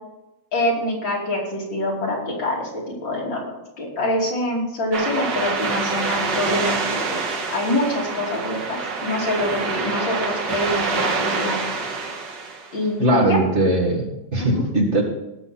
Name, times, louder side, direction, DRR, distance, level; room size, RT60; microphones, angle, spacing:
voice 1, 0.5-3.4 3.8-7.2 7.5-11.6 12.7-13.4 14.4-14.6, left 1 dB, 70° left, -3 dB, 3.7 m, -25 dB
sound 1, 4.9-12.8, right 4 dB, 65° right, 2.0 m, -26 dB
voice 2, 13.0-15.0, right 1 dB, 35° right, -2 dB, 2.3 m, -20 dB
18.0 x 6.9 x 4.3 m, 0.94 s
omnidirectional pair, 2.1 m